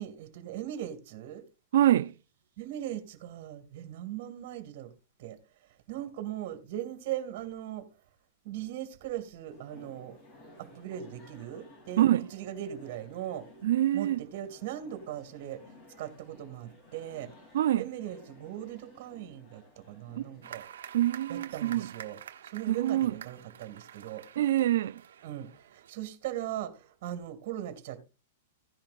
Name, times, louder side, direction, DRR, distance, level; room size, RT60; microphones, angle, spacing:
voice 1, 0.0-1.5 2.6-4.9 5.2-7.9 8.4-10.2 10.6-13.5 13.9-17.3 17.8-20.7 21.3-22.2 22.4-24.2 25.2-28.0, right 12 dB, 50° right, 2.2 m, -39 dB
voice 2, 1.7-2.1 12.0-12.2 13.6-14.2 17.5-17.8 20.2-20.3 20.9-21.9 22.7-23.1 24.4-25.0, right 13 dB, 70° right, 0.5 m, -25 dB
sound 1, 9.5-20.6, left 1 dB, 35° left, 3.3 m, -56 dB
sound 2, 20.4-25.9, right 9 dB, 85° right, 1.1 m, -48 dB
16.0 x 10.5 x 2.6 m
supercardioid pair, 155°, 0 cm